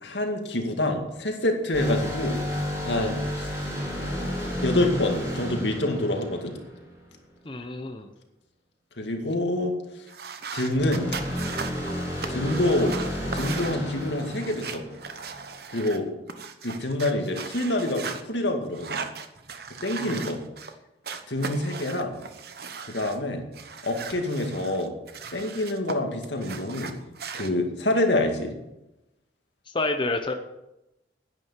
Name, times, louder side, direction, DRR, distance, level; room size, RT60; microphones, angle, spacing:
voice 1, 0.0-2.4 2.8-3.5 4.6-6.5 9.0-9.7 10.5-11.1 12.3-12.9 13.3-14.8 15.7-16.1 16.6-19.0 19.8-20.4 21.3-22.2 22.9-23.4 23.8-24.9 25.3-26.9 27.3-28.5, left 1 dB, 80° left, 3 dB, 2.2 m, -26 dB
sound 1, 1.7-7.2 10.7-15.5, equal, 20° right, 4.2 m, -31 dB
voice 2, 7.4-8.1 20.0-20.3 29.7-30.3, left 2 dB, 25° left, 5 dB, 0.8 m, -29 dB
sound 2, 10.1-16.0 16.3-18.2 18.7-20.7 21.0-23.2 23.5-25.9 26.2-27.5, right 5 dB, 60° right, 1.1 m, -38 dB
10.5 x 9.7 x 7.5 m, 0.94 s
head